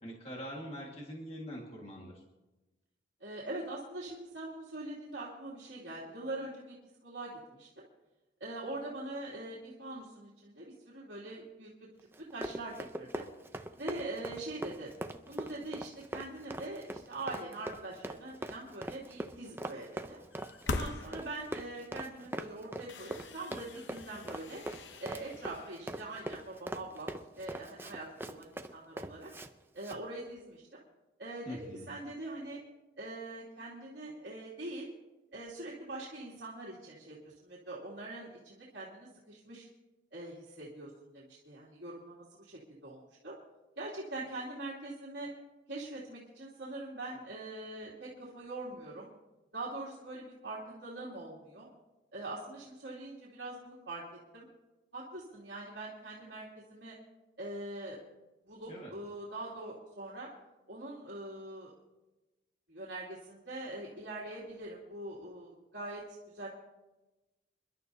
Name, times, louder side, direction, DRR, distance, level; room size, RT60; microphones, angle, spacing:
voice 1, 0.0-2.2 31.5-31.9 58.7-58.9, equal, 35° left, -2 dB, 1.8 m, -43 dB
voice 2, 3.2-6.8 7.0-7.9 8.4-11.7 12.3-13.2 13.8-14.9 15.3-20.2 20.6-24.6 25.0-27.1 27.4-29.3 29.7-30.8 31.2-31.6 31.9-32.6 33.0-34.9 35.3-39.7 40.1-43.3 43.8-45.3 45.7-49.1 49.5-51.7 52.1-54.0 54.3-54.5 54.9-57.0 57.4-58.0 58.5-60.3 60.7-61.7 62.7-66.5, right 2 dB, 70° right, -6 dB, 2.6 m, -43 dB
Run, 12.1-29.5 29.8-30.0, right 1 dB, 10° right, 0.6 m, -42 dB
sound 1, 20.3-21.7 22.3-22.4 22.8-26.7, left 3 dB, 75° left, 0.8 m, -43 dB
27.5 x 11.5 x 2.8 m, 1.1 s
head